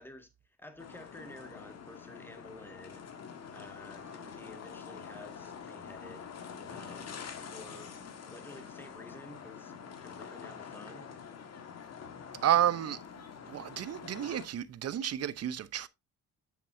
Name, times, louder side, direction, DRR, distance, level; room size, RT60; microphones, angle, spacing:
voice 1, 0.0-3.0 3.5-6.3 6.7-7.9 8.2-9.7 10.0-11.1, left 1 dB, 5° left, 1.9 m, -51 dB
sound 1, 0.8-14.5, left 6 dB, 55° left, 1.7 m, -46 dB
voice 2, 12.4-13.0 13.5-15.9, right 11 dB, 55° right, 0.8 m, -30 dB
8.1 x 7.4 x 2.7 m
cardioid pair, 90°, 30 cm